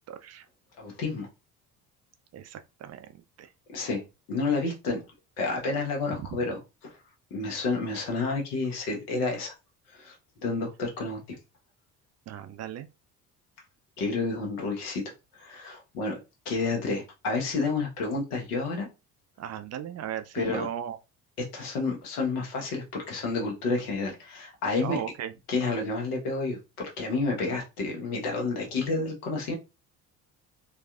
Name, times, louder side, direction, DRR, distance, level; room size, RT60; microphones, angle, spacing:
voice 1, 0.1-0.5 2.3-3.1 3.4-3.5 12.3-12.9 19.4-21.0 24.8-25.3, right 9 dB, 35° right, 0.5 m, -36 dB
voice 2, 0.8-1.3 3.7-4.0 4.3-5.0 5.4-7.0 7.3-9.5 9.9-10.1 10.4-11.4 14.0-15.0 15.3-16.2 16.4-18.9 20.3-20.7 21.5-25.0 25.5-29.5, left 3 dB, 70° left, 1.3 m, -30 dB
4.0 x 2.4 x 2.4 m
figure-of-eight pair, 55°, 47 cm